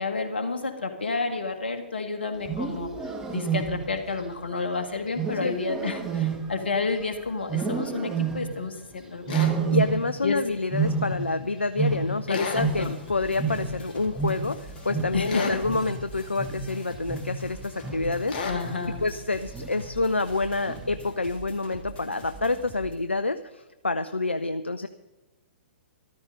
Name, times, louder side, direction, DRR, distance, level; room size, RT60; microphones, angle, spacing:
voice 1, 0.0-2.9 3.3-9.5 10.2-10.4 12.3-12.4 12.8-13.0 15.1-15.5 18.5-19.0, left 4 dB, 65° left, 6 dB, 1.7 m, -30 dB
Wild animals, 2.3-4.1 5.1-7.0 7.5-8.7 9.3-10.3 10.6-13.1 13.4-18.3 18.6-19.1 19.5-20.0 20.7-21.1, right 5 dB, 10° right, 1.5 m, -29 dB
sound 1, 9.3-9.6 12.3-12.7 15.3-15.6 18.3-18.6, left 4 dB, 40° left, 2.2 m, -32 dB
voice 2, 9.7-18.4 19.0-24.9, left 3 dB, 80° left, 11 dB, 0.5 m, -28 dB
sound 2, 12.4-22.9, right 1 dB, 20° left, 3.2 m, -44 dB
13.5 x 12.5 x 5.1 m, 1.1 s
figure-of-eight pair, 115°, 6 cm